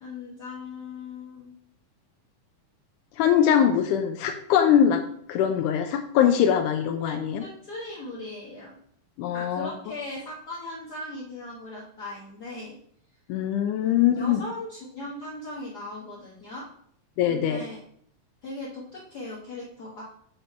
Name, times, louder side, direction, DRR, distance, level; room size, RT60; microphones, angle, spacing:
voice 1, 0.0-1.5 7.0-8.8 9.3-12.8 13.8-16.7 17.3-17.8 18.4-20.0, left 2 dB, 65° left, -6 dB, 0.9 m, -38 dB
voice 2, 3.2-5.0 5.3-7.4 9.2-9.7 13.3-14.4 17.2-17.6, left 9 dB, 85° left, 6 dB, 2.1 m, -22 dB
7.6 x 4.1 x 4.4 m, 0.65 s
omnidirectional pair, 3.6 m